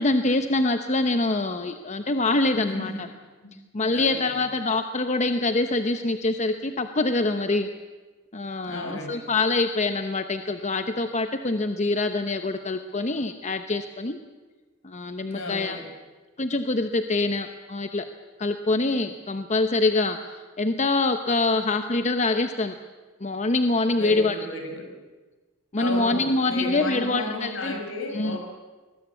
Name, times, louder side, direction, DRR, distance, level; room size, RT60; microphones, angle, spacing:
voice 1, 0.0-3.1 3.7-7.7 8.3-14.2 14.8-15.8 16.4-18.0 18.4-22.7 23.2-24.4 25.7-27.7 28.1-28.4, left 2 dB, 35° left, 8 dB, 0.9 m, -25 dB
voice 2, 2.5-3.0 3.4-3.5 3.9-4.4 8.6-9.3 15.3-15.9 24.0-24.9 25.8-28.4, left 2 dB, 70° left, 4 dB, 5.6 m, -33 dB
23.0 x 20.5 x 8.4 m, 1.3 s
head